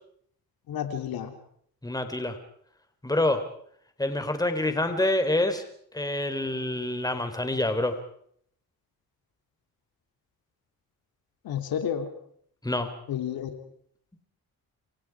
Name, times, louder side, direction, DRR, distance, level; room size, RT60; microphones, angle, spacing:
voice 1, 0.7-1.3 11.4-12.1 13.1-13.6, left 9 dB, 80° left, 6 dB, 3.1 m, -31 dB
voice 2, 1.8-2.4 3.0-3.4 4.0-5.6 5.9-8.0 12.6-12.9, left 1 dB, 10° left, 8 dB, 3.8 m, -26 dB
28.0 x 26.0 x 4.8 m, 0.65 s
cardioid pair, 80°, 36 cm